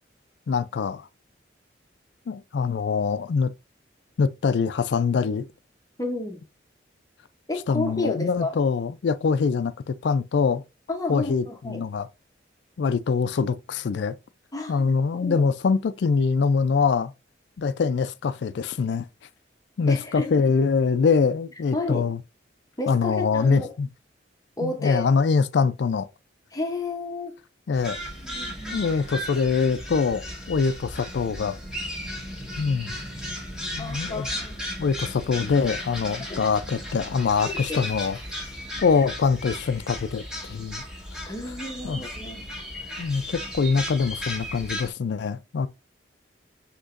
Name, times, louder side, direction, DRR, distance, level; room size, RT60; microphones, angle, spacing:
voice 1, 0.5-1.1 2.3-3.5 4.2-5.5 7.7-10.6 11.1-12.1 12.8-14.1 14.7-17.1 17.6-19.1 19.8-22.2 22.9-23.9 24.6-26.1 27.7-28.0 28.7-31.6 32.6-32.9 33.7-34.3 34.8-38.2 38.8-40.8 41.8-42.0 43.0-45.7, left 5 dB, 65° left, 0.4 m, -24 dB
voice 2, 6.0-6.5 7.5-8.5 10.9-11.8 14.5-14.9 15.2-15.4 19.9-20.4 21.7-22.1 22.8-23.7 24.6-25.0 26.5-27.3 28.2-28.9 33.8-34.6 36.2-36.5 37.4-37.8 38.8-38.9 41.2-42.5, left 2 dB, 20° left, 0.7 m, -31 dB
sound 1, 27.7-44.9, equal, 5° right, 1.2 m, -35 dB
6.3 x 2.9 x 2.5 m
head